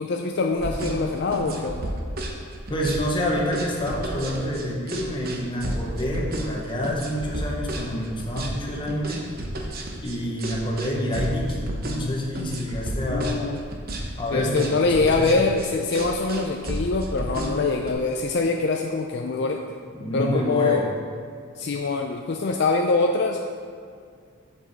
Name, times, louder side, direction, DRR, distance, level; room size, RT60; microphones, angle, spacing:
voice 1, 0.0-1.9 13.1-13.6 14.3-19.6 20.1-20.8 21.6-23.4, left 3 dB, 55° left, 2 dB, 0.4 m, -24 dB
sound 1, 0.5-17.9, right 1 dB, 45° right, 0.9 m, -31 dB
voice 2, 2.7-9.2 10.0-13.4 14.2-15.4 19.9-20.8, equal, 25° left, -2 dB, 1.1 m, -28 dB
7.3 x 7.2 x 4.1 m, 2.1 s
head